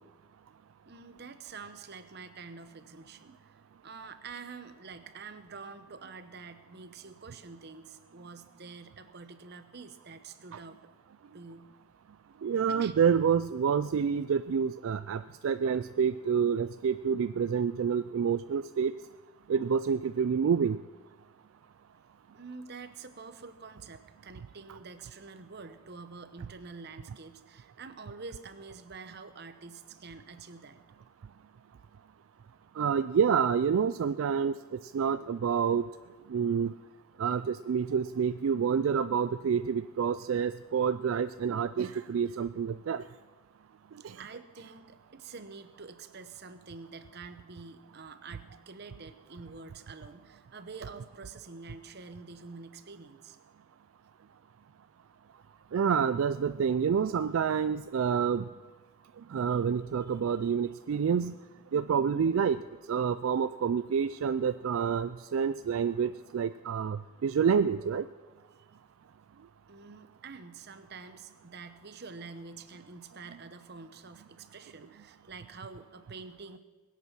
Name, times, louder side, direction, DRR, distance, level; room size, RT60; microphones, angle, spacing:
voice 1, 0.9-10.9 11.3-11.7 12.7-12.9 22.3-30.8 44.0-53.4 68.5-68.7 69.7-76.6, right 4 dB, 50° right, 10 dB, 0.9 m, -47 dB
voice 2, 12.4-18.9 19.5-20.8 32.8-35.9 36.3-36.7 37.2-43.0 44.0-44.2 55.7-58.4 59.3-61.3 61.7-62.6 62.9-68.0, right 7 dB, 70° right, 12 dB, 0.3 m, -28 dB
21.0 x 8.4 x 6.0 m, 1.3 s
head